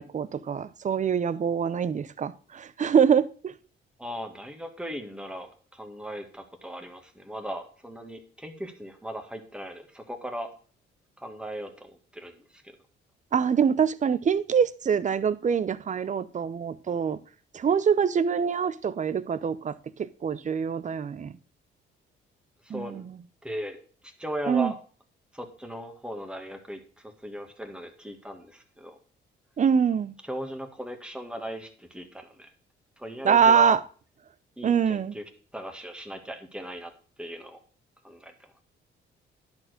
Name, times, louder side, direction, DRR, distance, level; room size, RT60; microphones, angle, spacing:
voice 1, 0.0-3.5 13.3-17.2 17.5-19.7 20.0-21.3 22.7-23.1 24.5-24.7 29.6-30.1 33.2-33.8 34.6-35.2, right 7 dB, 40° right, 0.6 m, -24 dB
voice 2, 4.0-10.5 11.2-12.7 22.6-23.0 23.4-23.8 24.0-24.7 25.3-29.0 30.3-32.5 33.0-33.7 34.6-35.2 35.5-36.9 37.2-37.6 38.0-38.3, equal, 5° right, 1.8 m, -38 dB
10.5 x 4.4 x 6.5 m
cardioid pair, 90°, 20 cm